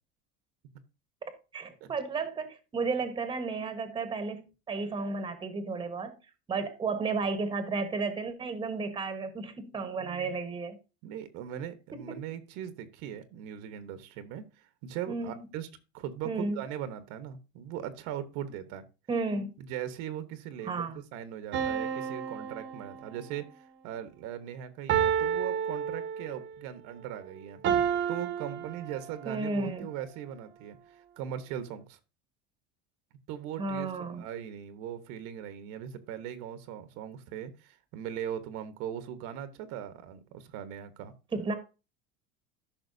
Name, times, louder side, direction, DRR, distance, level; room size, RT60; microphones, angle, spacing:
voice 1, 1.2-6.2 6.5-10.8 15.1-15.4 16.2-16.6 19.1-19.5 20.6-21.0 29.2-29.9 33.6-34.2 41.3-41.5, right 4 dB, 15° right, 1.2 m, -33 dB
voice 2, 10.0-10.3 11.0-15.7 15.9-18.8 19.6-27.6 28.1-32.0 33.3-41.1, right 10 dB, 65° right, 1.1 m, -39 dB
sound 1, 21.5-23.4 24.9-26.5 27.6-29.4, right 8 dB, 40° right, 1.0 m, -30 dB
13.5 x 5.8 x 2.7 m
cardioid pair, 150°, 29 cm